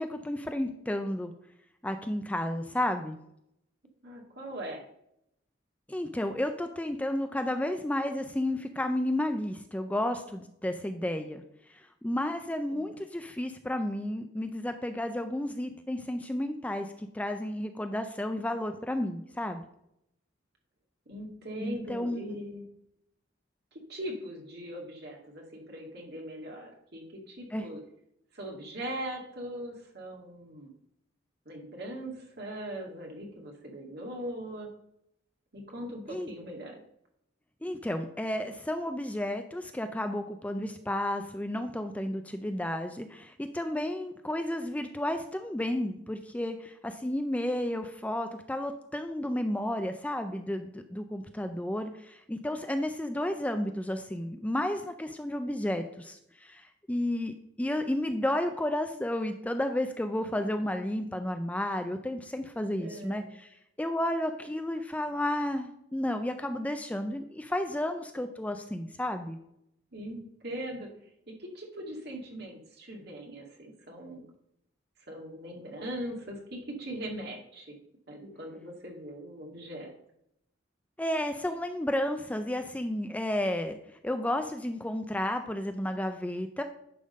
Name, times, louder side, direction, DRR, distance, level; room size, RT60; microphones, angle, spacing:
voice 1, 0.0-1.3 1.8-3.2 5.9-11.4 12.0-19.6 21.6-22.4 27.5-27.7 36.1-36.3 37.6-63.5 63.8-69.4 81.0-83.8 84.0-86.6, left 1 dB, 10° left, 7 dB, 0.4 m, -32 dB
voice 2, 4.0-4.8 12.7-13.0 21.1-22.7 23.7-27.8 28.3-30.7 31.5-34.7 35.5-36.8 62.8-63.3 69.9-70.9 71.4-74.2 75.1-77.8 78.1-79.9, right 1 dB, 55° right, 0 dB, 2.0 m, -40 dB
10.0 x 3.7 x 5.3 m, 0.77 s
head